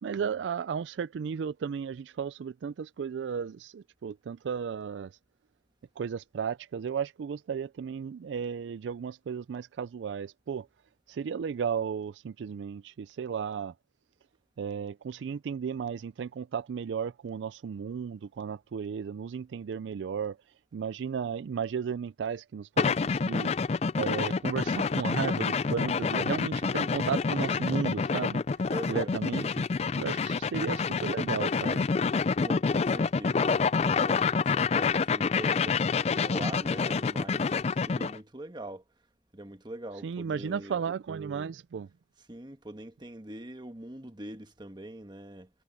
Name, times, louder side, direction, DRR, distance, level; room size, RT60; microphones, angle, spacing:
voice 1, 0.0-5.1 6.0-10.7 11.1-13.7 14.6-20.4 20.7-23.5 24.0-28.4 28.9-29.5 30.0-31.8 40.0-41.9, right 7 dB, 85° right, 0.4 m, -34 dB
sound 1, 22.8-38.2, left 5 dB, 35° left, 0.4 m, -27 dB
voice 2, 26.1-26.4 28.7-29.1 32.4-38.8 39.3-40.8 42.3-45.5, right 1 dB, 25° right, 1.3 m, -42 dB
head